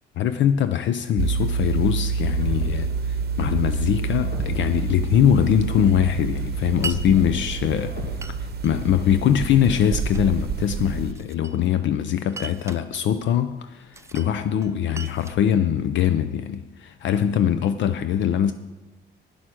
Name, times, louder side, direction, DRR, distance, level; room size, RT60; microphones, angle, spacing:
voice 1, 0.2-8.0 8.4-18.5, left 9 dB, 70° left, 0.5 m, -22 dB
sound 1, 1.2-11.1, right 5 dB, 50° right, 0.8 m, -28 dB
sound 2, 2.3-9.3, left 1 dB, 85° left, 2.5 m, -39 dB
Glass, 6.8-7.0 8.2-8.8 9.6-10.3 11.1-11.8 12.3-12.9 13.9-14.3 14.6-16.3, right 4 dB, 15° right, 0.5 m, -38 dB
10.0 x 7.9 x 6.2 m
cardioid pair, 90°, 20 cm